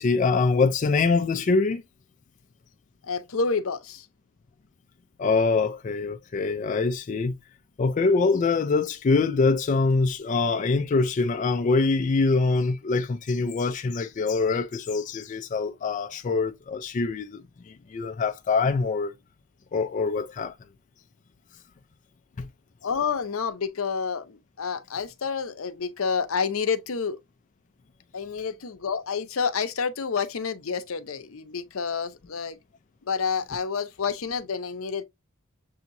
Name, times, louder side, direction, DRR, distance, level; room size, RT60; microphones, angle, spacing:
voice 1, 0.0-1.8 5.2-7.4 7.8-19.1 19.7-20.6 22.4-22.5, left 4 dB, 35° left, 0.3 m, -24 dB
voice 2, 3.0-4.1 22.8-27.2 28.1-32.6 33.0-35.0, left 5 dB, 75° left, 0.7 m, -29 dB
6.9 x 2.8 x 2.5 m
head